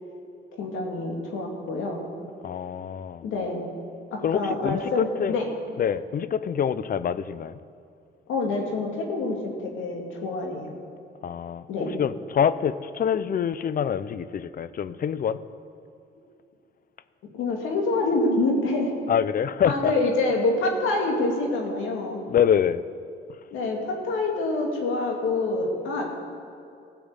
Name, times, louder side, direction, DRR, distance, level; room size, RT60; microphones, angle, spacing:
voice 1, 0.6-2.0 3.2-3.6 4.1-5.5 8.3-10.7 11.7-11.9 17.3-18.9 19.6-22.2 23.5-26.2, left 2 dB, 85° left, 0 dB, 2.3 m, -26 dB
voice 2, 2.4-3.2 4.2-5.4 5.8-7.6 11.2-11.7 11.9-15.4 19.1-19.9 22.3-22.8, left 8 dB, 45° left, 15 dB, 0.6 m, -25 dB
16.5 x 6.0 x 8.2 m, 2.5 s
cardioid pair, 90°, 20 cm